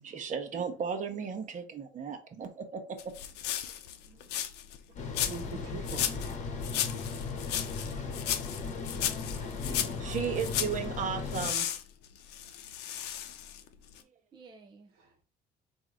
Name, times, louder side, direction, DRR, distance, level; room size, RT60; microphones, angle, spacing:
voice 1, 0.0-3.1 4.1-4.2 5.2-5.3 7.0-7.2 7.5-8.1 10.0-11.7, right 6 dB, 50° right, 1.0 m, -36 dB
sound 1, 3.0-4.8 5.1-5.6 5.9-6.4 6.6-10.8 11.3-13.7 14.0-14.1, left 10 dB, 85° left, 0.6 m, -34 dB
sound 2, 5.0-11.5, left 4 dB, 45° left, 1.0 m, -37 dB
voice 2, 5.3-6.3 15.0-15.2, right 4 dB, 75° right, 1.2 m, -43 dB
voice 3, 8.9-10.3 14.3-14.9, right 4 dB, 25° right, 0.5 m, -51 dB
4.0 x 2.7 x 4.8 m
cardioid pair, 110°, 17 cm